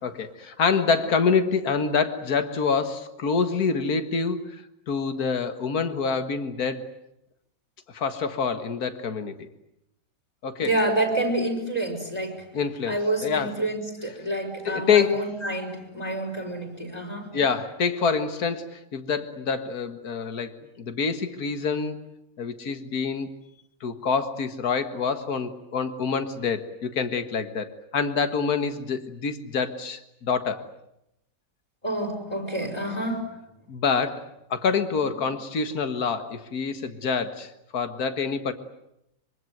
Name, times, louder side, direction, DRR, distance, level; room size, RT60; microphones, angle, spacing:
voice 1, 0.0-6.9 7.9-9.5 10.4-10.7 12.5-13.6 14.7-15.3 17.3-22.0 22.4-23.3 23.8-30.6 33.7-38.5, left 5 dB, 60° left, 9 dB, 2.1 m, -26 dB
voice 2, 10.6-12.5 12.9-17.3 31.8-33.3, right 1 dB, 20° left, 4 dB, 5.3 m, -28 dB
25.5 x 24.0 x 9.3 m, 0.83 s
omnidirectional pair, 1.8 m